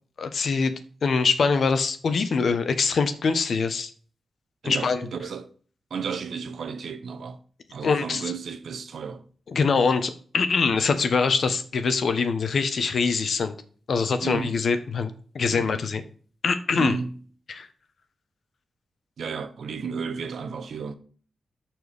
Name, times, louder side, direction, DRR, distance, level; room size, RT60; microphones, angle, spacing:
voice 1, 0.2-0.7 1.0-3.9 4.6-5.1 7.8-8.3 9.5-13.5 13.9-16.0 16.4-17.0 17.5-17.7, left 5 dB, 70° left, 1.1 m, -24 dB
voice 2, 4.6-5.5 5.9-7.4 7.7-9.2 14.2-14.5 15.5-15.8 16.7-17.1 19.2-21.0, right 6 dB, 80° right, 0.9 m, -33 dB
13.0 x 4.6 x 3.6 m
cardioid pair, 60°, 0 cm